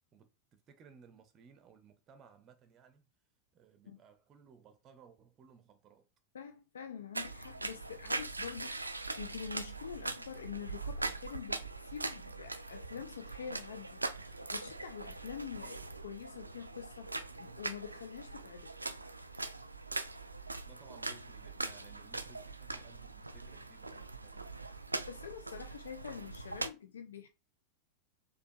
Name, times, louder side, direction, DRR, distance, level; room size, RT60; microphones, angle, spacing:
voice 1, 0.1-3.1 3.5-6.1 20.7-24.5, right 6 dB, 30° right, 0.6 m, -60 dB
voice 2, 6.3-18.7 25.1-27.3, left 7 dB, 65° left, 0.3 m, -46 dB
sound 1, 7.1-26.7, right 2 dB, 85° right, 0.3 m, -41 dB
4.4 x 2.5 x 2.7 m
figure-of-eight pair, 90°, 0 cm